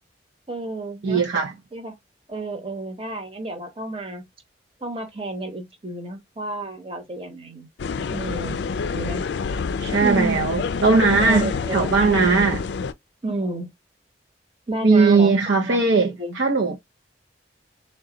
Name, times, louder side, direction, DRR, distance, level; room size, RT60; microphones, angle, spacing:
voice 1, 0.5-1.2 1.7-1.9 2.3-4.2 4.8-7.7 8.1-8.6 8.9-9.3 10.0-10.7 11.2-11.9 12.2-12.5 13.2-13.7 14.7-16.4, right 2 dB, 30° right, 1.0 m, -31 dB
voice 2, 1.0-1.5 9.8-12.6 14.8-16.8, right 4 dB, 70° right, 0.6 m, -19 dB
sound 1, 7.8-12.9, left 5 dB, 65° left, 0.4 m, -27 dB
3.8 x 2.3 x 3.8 m
head